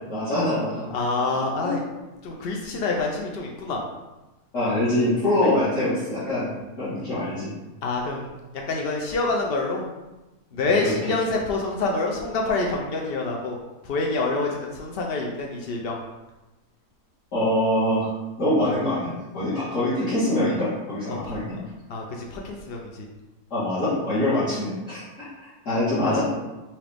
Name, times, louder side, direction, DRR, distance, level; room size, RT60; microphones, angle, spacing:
voice 1, 0.1-0.8 1.6-1.8 4.5-7.5 10.8-10.9 17.3-18.1 18.4-21.6 23.5-25.0 25.7-26.2, left 1 dB, 50° left, -15 dB, 2.0 m, -24 dB
voice 2, 0.9-1.8 2.2-3.8 7.8-8.3 8.7-9.8 10.5-13.6 13.8-16.0 21.1-21.4 21.9-23.1 24.3-24.4 26.0-26.2, left 3 dB, 85° left, 0 dB, 0.5 m, -27 dB
5.6 x 2.6 x 3.4 m, 1.1 s
omnidirectional pair, 1.7 m